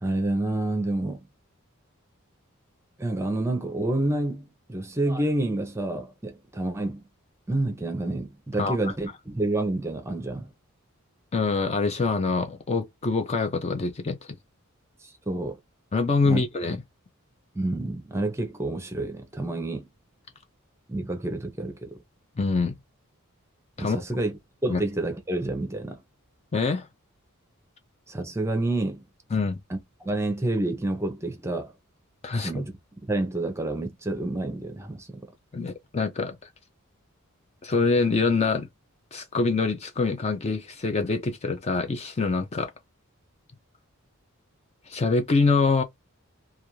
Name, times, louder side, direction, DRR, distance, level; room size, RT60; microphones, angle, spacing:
voice 1, 0.0-1.2 3.0-7.0 7.5-10.5 15.3-15.6 16.2-16.4 17.5-19.9 20.9-22.0 23.8-26.0 28.1-29.0 29.7-31.7 32.3-32.7 33.1-35.3, right 2 dB, 15° right, 0.6 m, -28 dB
voice 2, 11.3-14.4 15.9-16.8 22.4-22.7 23.8-24.0 24.7-24.8 26.5-26.9 29.3-29.6 32.2-32.5 35.5-36.4 37.6-38.7 39.1-42.7 44.9-45.8, left 4 dB, 30° left, 0.4 m, -25 dB
2.4 x 2.3 x 2.9 m
head